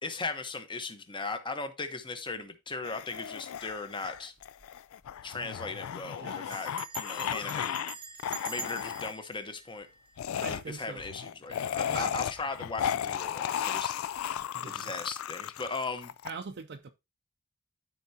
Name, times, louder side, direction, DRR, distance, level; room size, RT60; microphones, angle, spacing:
voice 1, 0.0-4.3 5.2-7.9 8.5-9.9 10.4-14.0 14.6-16.1, left 3 dB, 25° left, 1.0 m, -38 dB
sound 1, 2.8-7.9 8.2-9.1 10.2-16.3, left 9 dB, 80° left, 0.4 m, -35 dB
Bell, 4.4-4.8 5.0-5.1 5.3-5.7 6.5-10.6, right 7 dB, 25° right, 0.8 m, -45 dB
voice 2, 6.2-6.7 10.4-11.0 11.5-12.1 14.5-15.1 16.2-16.9, right 4 dB, 55° right, 0.5 m, -43 dB
12.5 x 4.7 x 2.8 m
head